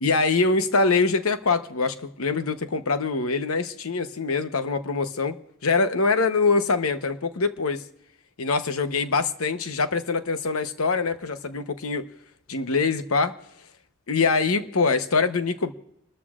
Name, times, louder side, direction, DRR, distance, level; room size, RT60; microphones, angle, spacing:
voice 1, 0.0-7.8 8.4-12.1 12.5-13.4 14.1-15.7, left 4 dB, 80° left, 0.9 m, -24 dB
29.5 x 13.5 x 2.5 m
head